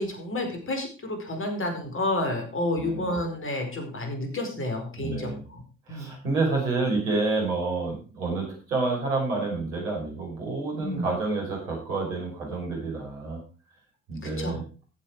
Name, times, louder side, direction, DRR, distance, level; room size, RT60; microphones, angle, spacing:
voice 1, 0.0-5.6 5.9-6.2 10.8-11.1 14.2-14.6, left 1 dB, 30° left, 4 dB, 4.9 m, -30 dB
voice 2, 2.8-3.1 5.0-5.4 5.9-13.4 14.1-14.6, right 3 dB, 75° right, -2 dB, 5.9 m, -29 dB
14.5 x 7.8 x 4.8 m, 0.35 s
figure-of-eight pair, 50°, 39 cm